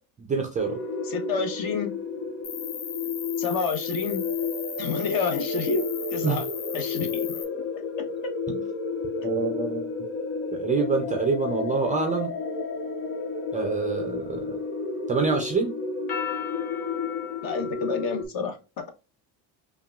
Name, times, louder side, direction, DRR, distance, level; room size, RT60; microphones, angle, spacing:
voice 1, 0.3-0.8 6.2-6.4 8.5-8.6 9.2-9.9 10.5-12.3 13.5-14.6 15.1-15.7, right 5 dB, 20° right, 0.3 m, -26 dB
sound 1, 0.6-18.2, left 4 dB, 85° left, 1.0 m, -31 dB
voice 2, 1.0-1.9 3.4-4.2 4.8-6.5 6.7-7.4 17.4-18.9, left 5 dB, 55° left, 1.0 m, -29 dB
Cricket, 2.4-7.4, left 7 dB, 40° left, 0.7 m, -37 dB
5.6 x 2.3 x 2.3 m
cardioid pair, 150°, 43 cm